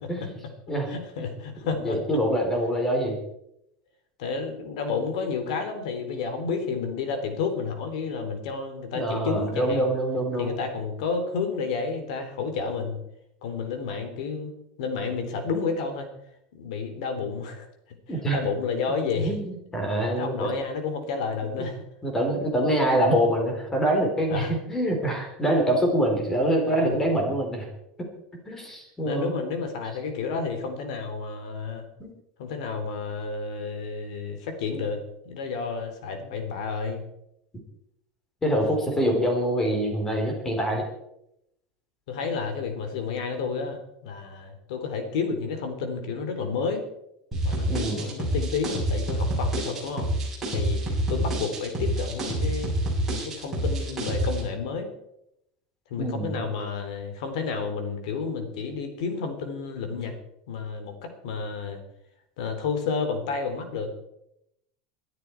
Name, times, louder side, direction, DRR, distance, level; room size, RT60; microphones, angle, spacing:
voice 1, 0.9-2.0 4.2-9.9 10.4-13.0 13.4-14.5 14.8-16.1 16.6-17.7 18.1-19.3 20.2-21.8 24.3-24.5 26.6-26.9 29.1-31.9 32.4-35.0 35.3-37.0 42.1-43.8 44.0-46.8 47.4-50.1 50.5-50.8 51.1-52.7 53.1-54.9 55.9-60.1 60.5-61.8 62.4-63.9, left 5 dB, 80° left, 7 dB, 3.4 m, -31 dB
voice 2, 1.8-3.2 8.9-10.5 18.1-18.4 19.1-19.4 19.7-20.5 21.4-21.7 22.0-27.7 28.5-29.3 32.0-32.1 38.4-40.9 47.7-48.0 56.0-56.4, right 1 dB, 10° left, 2 dB, 3.7 m, -25 dB
sound 1, 47.3-54.4, right 1 dB, 10° right, 7.6 m, -27 dB
22.0 x 12.5 x 4.6 m, 0.79 s
supercardioid pair, 175°, 4 cm